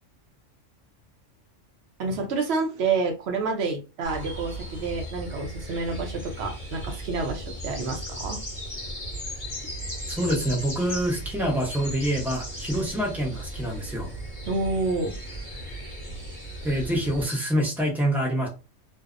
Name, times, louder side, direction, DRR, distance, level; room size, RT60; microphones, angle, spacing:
voice 1, 2.0-8.4 14.5-15.1, right 4 dB, 60° right, 3 dB, 0.9 m, -28 dB
sound 1, 4.0-17.3, right 1 dB, 35° left, 0.7 m, -36 dB
voice 2, 10.1-14.1 16.6-18.5, equal, ahead, -2 dB, 0.5 m, -26 dB
2.6 x 2.0 x 2.4 m, 0.30 s
omnidirectional pair, 1.3 m